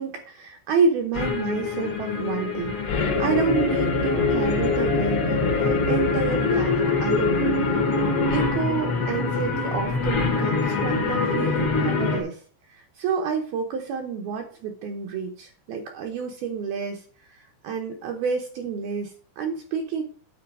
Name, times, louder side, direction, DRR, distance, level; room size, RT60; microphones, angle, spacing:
voice 1, 0.0-7.8 8.3-20.0, right 5 dB, 75° right, 3 dB, 2.3 m, -29 dB
sound 1, 1.1-12.2, left 3 dB, 70° left, 1.3 m, -24 dB
9.4 x 4.4 x 6.0 m, 0.43 s
omnidirectional pair, 5.3 m